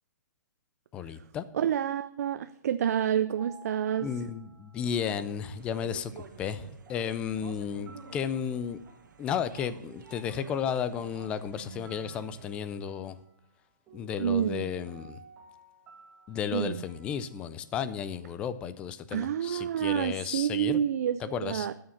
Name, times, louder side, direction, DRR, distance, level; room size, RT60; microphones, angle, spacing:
voice 1, 0.9-1.5 4.0-6.1 6.4-8.8 9.2-13.2 13.9-15.2 16.3-20.8 21.2-21.7, left 8 dB, 10° left, 14 dB, 0.3 m, -33 dB
voice 2, 1.5-4.1 14.2-14.7 16.5-16.8 19.1-21.7, right 9 dB, 50° right, 12 dB, 0.5 m, -28 dB
sound 1, 2.8-17.9, right 4 dB, 15° right, 1.4 m, -56 dB
sound 2, 5.0-12.6, right 6 dB, 75° right, 1.4 m, -50 dB
11.0 x 6.4 x 7.1 m, 0.76 s
hypercardioid pair, 165°, 10 cm